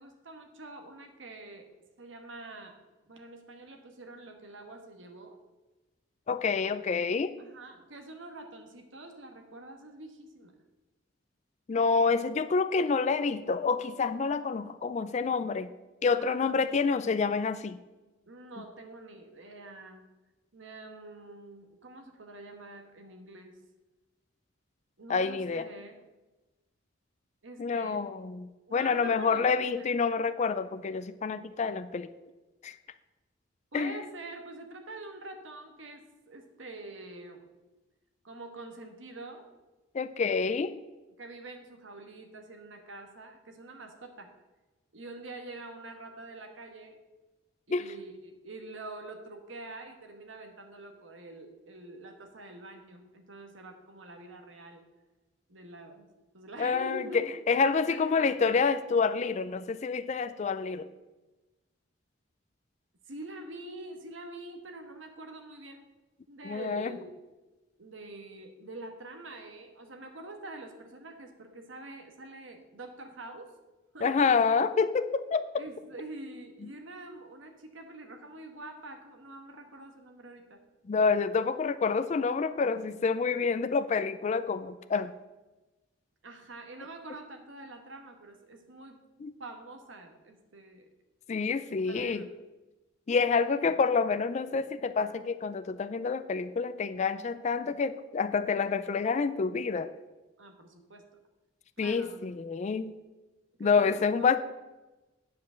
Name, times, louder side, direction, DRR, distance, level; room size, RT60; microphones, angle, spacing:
voice 1, 0.0-1.7 2.0-2.8 3.1-5.4 7.4-10.5 16.2-16.4 18.3-20.0 20.5-23.6 25.0-26.0 27.4-28.3 28.7-29.9 33.7-37.4 38.2-39.5 41.2-44.3 44.9-47.0 47.7-54.8 55.5-56.1 56.3-57.3 57.7-58.6 63.1-65.8 66.3-67.1 67.8-73.5 73.9-74.2 75.6-80.6 86.2-89.0 89.4-90.9 91.8-92.3 100.4-101.1 101.8-102.4 103.6-104.4, right 2 dB, 80° right, 5 dB, 1.4 m, -46 dB
voice 2, 6.3-7.4 11.7-15.7 16.0-17.8 25.1-25.7 27.6-32.1 32.6-32.7 33.7-34.0 39.9-40.8 47.7-47.9 56.6-60.9 66.4-66.9 74.0-75.5 80.9-85.1 89.2-89.3 91.3-92.3 93.1-99.9 101.8-102.9 103.6-104.4, left 5 dB, 35° left, 12 dB, 0.4 m, -28 dB
9.4 x 5.1 x 6.8 m, 1.1 s
head